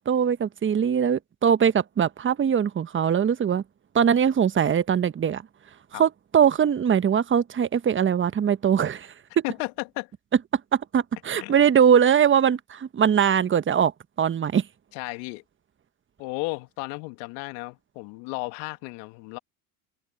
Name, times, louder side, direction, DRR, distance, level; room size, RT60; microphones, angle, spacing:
voice 1, 0.0-3.6 3.9-5.4 5.9-9.1 9.4-9.5 10.7-13.9 14.2-14.6, right 8 dB, 25° right, 1.3 m, -21 dB
voice 2, 9.4-10.1 11.4-11.5 14.9-15.4 16.2-19.4, left 27 dB, 65° left, 2.1 m, -34 dB
hypercardioid pair, 80°, 44 cm